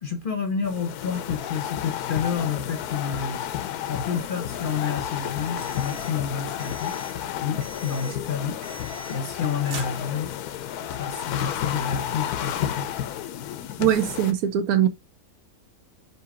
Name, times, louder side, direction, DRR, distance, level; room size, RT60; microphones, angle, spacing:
voice 1, 0.0-3.4 3.9-7.0 7.4-10.3 10.9-12.9, left 6 dB, 45° left, 0.8 m, -30 dB
sound 1, 0.6-14.3, left 10 dB, 85° left, 1.1 m, -31 dB
sound 2, 5.2-6.2 6.6-7.2 7.6-8.2 8.6-9.4 9.6-10.5, right 3 dB, 45° right, 1.2 m, -42 dB
voice 2, 13.8-14.9, right 10 dB, 75° right, 1.1 m, -21 dB
3.8 x 2.9 x 4.6 m
omnidirectional pair, 1.6 m